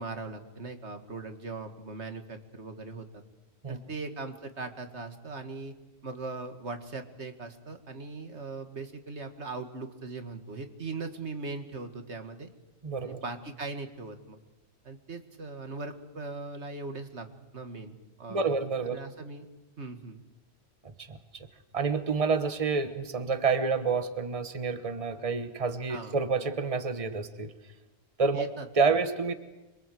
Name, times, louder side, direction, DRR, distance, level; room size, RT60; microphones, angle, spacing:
voice 1, 0.0-3.2 3.7-5.7 6.0-12.5 13.0-14.4 14.8-17.3 17.5-19.5 19.8-20.2 25.9-26.2 28.3-28.7, right 3 dB, 85° right, 7 dB, 2.3 m, -40 dB
voice 2, 12.8-13.2 18.3-19.0 20.8-21.2 21.7-27.5 28.2-28.5 28.8-29.3, right 4 dB, 30° right, 9 dB, 1.3 m, -28 dB
26.5 x 23.0 x 7.8 m, 1.1 s
omnidirectional pair, 1.1 m